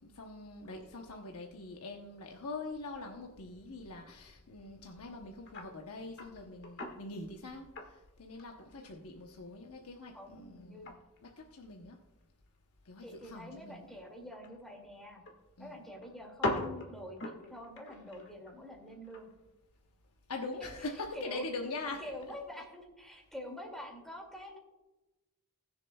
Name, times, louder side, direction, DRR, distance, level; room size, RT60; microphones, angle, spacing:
voice 1, 0.0-10.9 11.2-12.0 12.8-13.9 15.6-15.8 20.3-22.0, left 3 dB, 90° left, 2 dB, 0.9 m, -43 dB
sound 1, 4.6-4.9 5.4-5.7 6.1-7.1 7.6-9.0 9.3-9.4 9.8-11.9 12.2-12.6 12.9-13.0 13.2-13.3 14.3-15.3 15.6-15.7 16.0-19.3 19.7-19.8, left 1 dB, 55° left, 1.6 m, -40 dB
voice 2, 10.1-10.9 13.0-15.2 15.6-19.3 20.6-20.7 21.1-21.4 22.0-24.6, left 1 dB, ahead, -1 dB, 2.3 m, -46 dB
20.0 x 6.8 x 2.3 m, 1.0 s
head